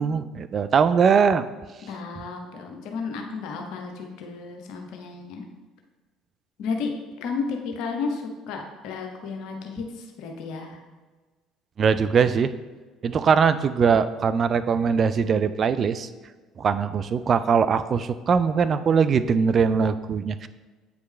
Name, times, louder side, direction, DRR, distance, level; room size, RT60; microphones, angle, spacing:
voice 1, 0.0-1.5 11.8-12.5 13.0-16.1 16.6-20.5, right 6 dB, 40° right, 12 dB, 0.3 m, -21 dB
voice 2, 1.9-5.4 6.6-6.9 7.2-10.8, left 4 dB, 60° left, 3 dB, 0.8 m, -32 dB
8.1 x 4.7 x 3.2 m, 1.3 s
figure-of-eight pair, 55°, 0 cm